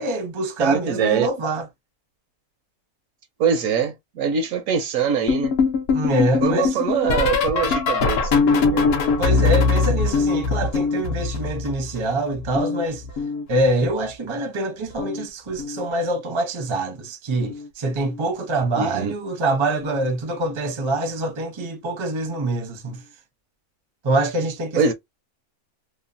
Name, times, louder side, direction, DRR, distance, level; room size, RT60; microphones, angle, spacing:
voice 1, 0.0-1.7 5.9-6.8 9.2-13.0 13.5-23.0 24.0-24.9, right 2 dB, 30° right, 0.5 m, -25 dB
voice 2, 0.6-1.3 3.4-5.5 6.4-8.9 18.8-19.1 24.8-24.9, right 6 dB, 70° right, 0.9 m, -23 dB
sound 1, 5.3-12.1 12.3-13.9 14.9-15.3 15.5-15.9 17.4-17.7 18.0-18.3 19.8-19.9, left 4 dB, 65° left, 0.6 m, -22 dB
2.9 x 2.2 x 2.5 m
omnidirectional pair, 1.6 m